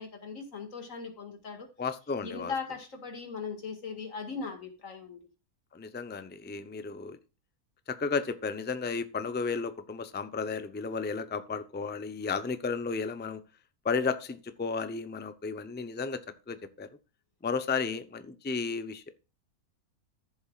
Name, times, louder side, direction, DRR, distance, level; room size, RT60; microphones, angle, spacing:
voice 1, 0.0-1.7 2.2-5.3, left 5 dB, 60° left, 2.4 m, -39 dB
voice 2, 1.8-2.5 5.7-7.2 7.9-13.4 13.8-16.2 16.5-16.9 17.4-19.1, left 5 dB, 15° left, 0.4 m, -33 dB
14.5 x 7.3 x 2.4 m
omnidirectional pair, 1.6 m